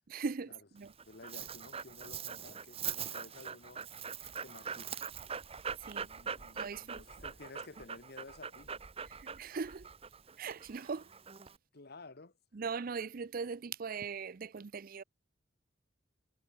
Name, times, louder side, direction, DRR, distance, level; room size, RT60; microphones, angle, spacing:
voice 1, 0.1-0.9 5.8-7.0 9.1-9.9 10.4-11.1 12.5-15.0, right 5 dB, 50° right, 0.5 m, -40 dB
Dog, 0.8-11.6, right 7 dB, 30° right, 1.0 m, -43 dB
voice 2, 1.0-3.8 4.3-5.0 6.0-8.7 9.1-9.2 11.7-12.3, left 3 dB, 55° left, 1.4 m, -53 dB
head